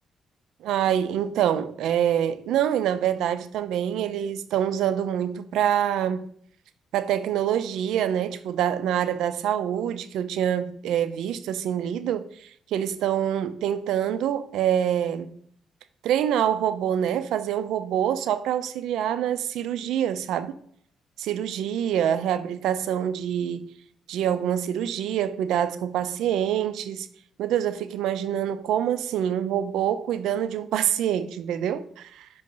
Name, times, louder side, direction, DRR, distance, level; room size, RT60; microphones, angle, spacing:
voice 1, 0.6-6.3 6.9-15.3 16.0-20.5 21.2-23.7 24.1-27.1 27.4-32.3, right 10 dB, 85° right, 0.5 m, -26 dB
5.7 x 5.2 x 3.8 m
cardioid pair, 90°, 0 cm